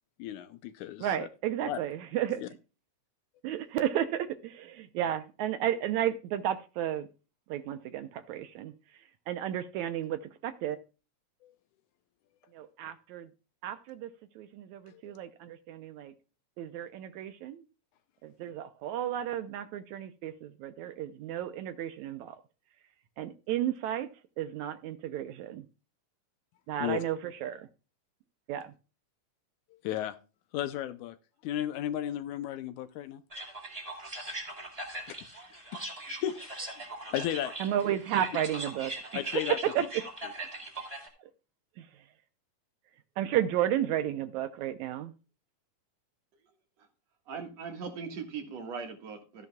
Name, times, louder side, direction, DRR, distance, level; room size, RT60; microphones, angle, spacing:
voice 1, 0.2-1.3 1.6-1.8 2.4-2.5 11.4-11.5 14.9-15.1 26.8-27.0 29.8-30.2 30.5-31.2 31.4-33.2 35.1-35.2 35.5-36.5 37.1-37.5 39.1-39.6, left 11 dB, 75° left, 2.0 m, -34 dB
voice 2, 1.0-2.4 3.4-7.1 7.5-8.7 9.3-10.8 12.5-13.3 13.6-14.1 14.4-16.1 16.6-17.6 18.2-22.3 23.2-24.1 24.4-25.6 26.7-27.7 28.5-28.7 37.6-38.9 39.8-39.9 43.2-45.1, right 11 dB, 75° right, 1.9 m, -33 dB
sound 1, 33.3-41.1, right 2 dB, 10° right, 2.3 m, -40 dB
voice 3, 47.3-49.5, right 5 dB, 60° right, 2.6 m, -39 dB
13.5 x 10.5 x 2.3 m
omnidirectional pair, 3.7 m